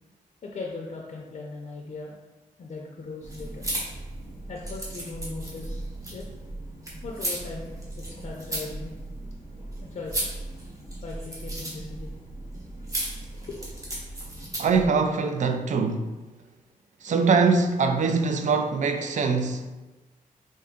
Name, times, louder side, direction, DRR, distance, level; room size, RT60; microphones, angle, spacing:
voice 1, 0.4-2.2 2.6-3.7 4.5-6.3 7.0-9.0 9.6-10.3 11.0-12.1 13.3-13.7, left 3 dB, 50° left, 0.5 m, -39 dB
sound 1, 3.2-14.9, right 1 dB, 25° right, 1.0 m, -35 dB
voice 2, 14.6-16.2 17.0-19.7, right 4 dB, 60° right, 0.4 m, -23 dB
3.7 x 2.6 x 3.5 m
wide cardioid pair, 110°, 15 cm